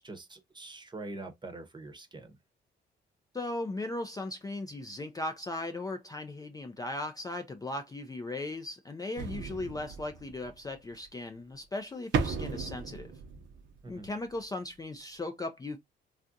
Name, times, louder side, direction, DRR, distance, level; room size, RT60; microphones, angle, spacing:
voice 1, 0.0-2.4 13.8-14.1, right 2 dB, 20° right, 0.8 m, -44 dB
voice 2, 3.3-13.1 13.9-15.8, left 2 dB, 20° left, 0.4 m, -37 dB
sound 1, 9.2-10.7 12.1-14.1 14.4-14.5, right 5 dB, 65° right, 0.7 m, -35 dB
3.3 x 2.4 x 2.6 m
cardioid pair, 90°, 20 cm